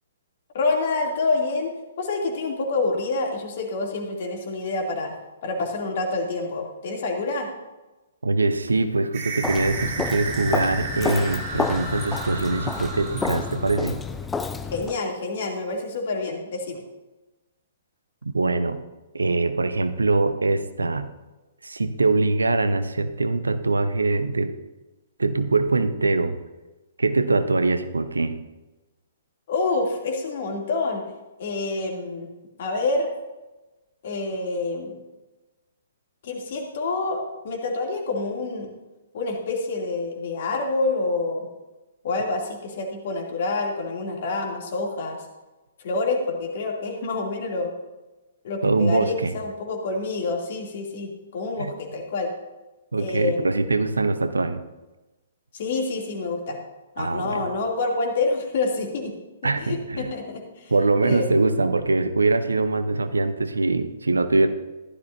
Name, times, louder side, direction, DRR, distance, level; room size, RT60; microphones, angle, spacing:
voice 1, 0.5-5.1 5.4-7.5 14.7-16.8 29.5-31.1 31.4-32.3 32.6-33.1 34.0-34.9 36.2-38.7 39.1-41.5 42.0-45.2 45.8-47.7 48.4-52.3 53.0-53.6 55.5-56.6 57.0-59.1 59.6-60.7 61.0-61.3, left 3 dB, 50° left, 1 dB, 2.7 m, -27 dB
voice 2, 8.2-14.0 18.2-18.8 19.1-21.1 21.6-24.5 25.2-26.4 27.0-28.3 48.6-49.3 51.6-51.7 52.9-54.6 57.0-57.5 59.4-60.1 60.7-64.5, right 3 dB, 80° right, 10 dB, 0.9 m, -23 dB
sound 1, 9.1-14.0, right 3 dB, 40° right, 3.0 m, -33 dB
Walk footsteps, 9.4-15.0, left 5 dB, 10° left, 0.5 m, -30 dB
15.0 x 12.0 x 2.7 m, 1.1 s
figure-of-eight pair, 120°, 0 cm